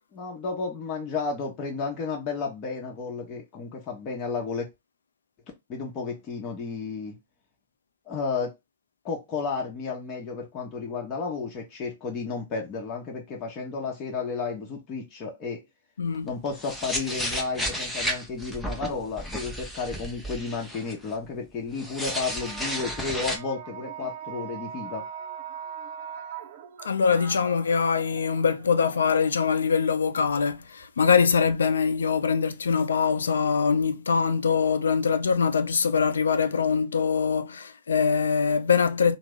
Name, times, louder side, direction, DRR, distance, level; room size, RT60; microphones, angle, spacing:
voice 1, 0.1-4.7 5.7-7.2 8.1-8.5 9.0-15.6 16.2-25.0, left 4 dB, 35° left, 0.9 m, -32 dB
voice 2, 16.0-16.3 26.8-39.2, left 6 dB, 75° left, 0.4 m, -23 dB
sound 1, 16.1-21.1 21.7-23.4, equal, 5° left, 0.7 m, -33 dB
sound 2, 22.1-29.4 30.2-31.7, right 8 dB, 50° right, 0.4 m, -41 dB
2.9 x 2.0 x 3.6 m
hypercardioid pair, 110°, 0 cm